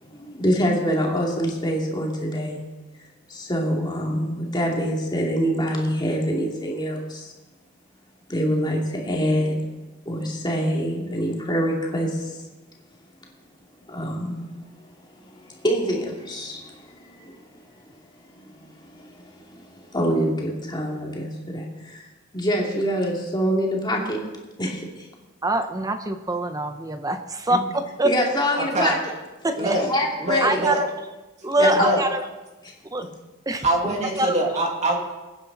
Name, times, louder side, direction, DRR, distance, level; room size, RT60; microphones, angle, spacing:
voice 1, 0.0-2.6 3.3-7.3 8.3-9.6 10.1-12.4 13.9-14.4 15.3-17.4 18.3-22.0 22.3-24.2 24.6-25.1 27.5-27.6 28.0-29.0 29.5-30.6 31.6-31.9 32.6-32.7 33.8-34.0, equal, 20° left, -1 dB, 2.6 m, -25 dB
voice 2, 25.4-28.1 29.4-29.8 30.4-30.9 31.4-32.2 32.9-33.1 33.5-33.6 34.2-34.4, right 2 dB, 15° right, 8 dB, 0.8 m, -24 dB
voice 3, 29.5-29.9 30.2-30.8 31.7-32.0 33.6-35.0, right 1 dB, 35° right, 0 dB, 2.3 m, -23 dB
22.0 x 9.8 x 4.1 m, 1.1 s
head